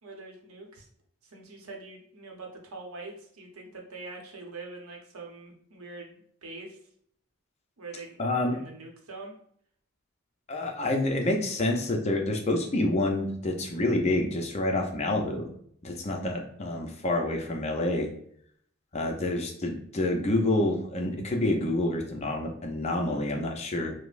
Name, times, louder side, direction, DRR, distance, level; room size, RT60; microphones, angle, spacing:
voice 1, 0.0-0.9 1.2-6.8 7.8-8.2 8.5-9.3 23.0-23.2, right 3 dB, 75° right, 1 dB, 0.8 m, -44 dB
voice 2, 8.2-8.6 10.5-15.5 15.8-18.1 18.9-23.9, left 1 dB, 30° left, 2 dB, 0.5 m, -28 dB
5.0 x 2.0 x 2.4 m, 0.65 s
head